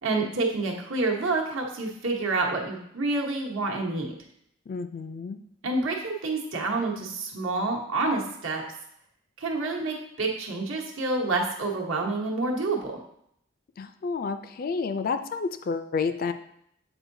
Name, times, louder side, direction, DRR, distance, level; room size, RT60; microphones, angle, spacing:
voice 1, 0.0-4.1 5.6-8.6 9.4-12.9, right 3 dB, 70° right, 0 dB, 1.1 m, -28 dB
voice 2, 4.7-5.4 13.8-16.3, left 5 dB, 45° left, 9 dB, 0.3 m, -30 dB
7.9 x 4.6 x 2.7 m, 0.72 s
head